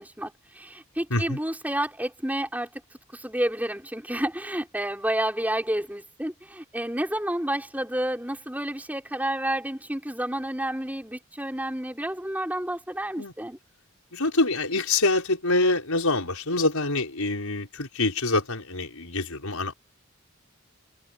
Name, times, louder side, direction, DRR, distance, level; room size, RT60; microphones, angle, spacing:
voice 1, 0.0-2.8 3.1-13.6, right 1 dB, 5° right, 6.0 m, -30 dB
voice 2, 14.1-19.7, left 2 dB, 85° left, 6.2 m, -25 dB
head